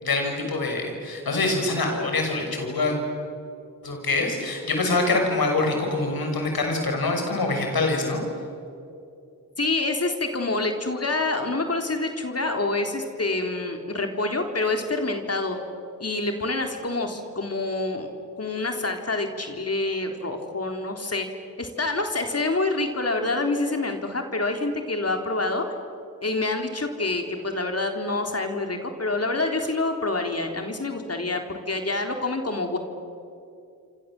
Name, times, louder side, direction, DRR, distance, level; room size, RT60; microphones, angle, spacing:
voice 1, 0.0-3.0 3.8-8.2, left 3 dB, 80° left, 3 dB, 6.4 m, -25 dB
voice 2, 9.6-15.6 16.0-18.1 18.4-21.3 21.6-25.6 26.2-32.8, left 2 dB, 40° left, 4 dB, 3.7 m, -27 dB
28.0 x 26.5 x 7.7 m, 2.6 s
cardioid pair, 50°, 36 cm